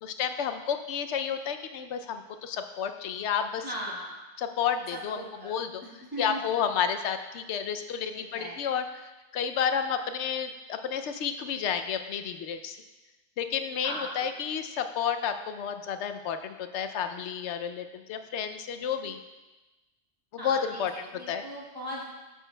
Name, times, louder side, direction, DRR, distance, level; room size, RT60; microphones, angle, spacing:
voice 1, 0.0-3.6 4.4-5.2 5.4-5.8 6.2-12.8 13.4-19.2 20.3-20.9 21.3-21.4, left 7 dB, 80° left, 8 dB, 0.9 m, -31 dB
voice 2, 3.6-4.2 4.9-5.5 6.0-6.6 8.1-8.6 13.8-14.1 20.4-22.0, right 1 dB, 20° right, -7 dB, 2.0 m, -38 dB
12.0 x 6.3 x 2.2 m, 1.1 s
omnidirectional pair, 1.2 m